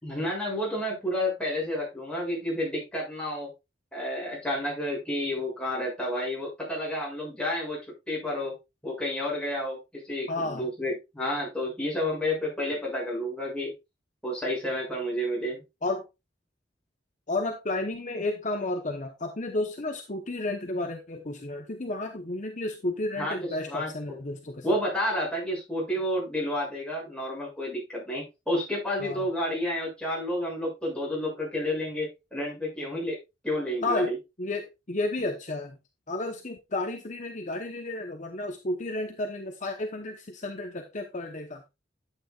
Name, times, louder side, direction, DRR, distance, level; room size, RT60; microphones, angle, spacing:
voice 1, 0.0-3.5 3.9-7.8 8.1-8.5 8.8-13.7 14.2-15.6 23.2-24.2 24.6-33.2 33.4-34.2, left 1 dB, 5° left, -4 dB, 7.0 m, -30 dB
voice 2, 10.3-10.7 15.8-16.0 17.3-24.8 29.0-29.2 33.8-34.1 34.4-35.8 36.1-41.6, left 2 dB, 40° left, 4 dB, 1.0 m, -32 dB
11.0 x 9.0 x 2.4 m, 0.24 s
head